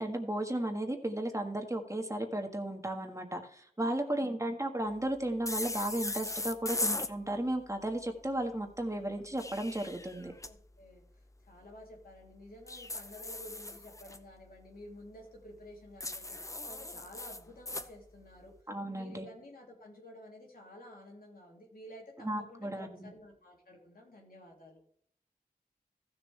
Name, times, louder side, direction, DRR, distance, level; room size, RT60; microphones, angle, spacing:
voice 1, 0.0-10.3 18.7-19.2 22.2-23.1, right 1 dB, 20° right, 3 dB, 1.6 m, -34 dB
voice 2, 3.8-4.3 10.2-18.5 18.8-24.8, left 1 dB, 80° left, -1 dB, 3.1 m, -52 dB
sound 1, 5.5-7.1 9.2-10.5 12.7-14.2 16.0-17.9, left 2 dB, 20° left, 0.6 m, -38 dB
15.0 x 6.9 x 3.3 m, 0.64 s
wide cardioid pair, 55°, 15 cm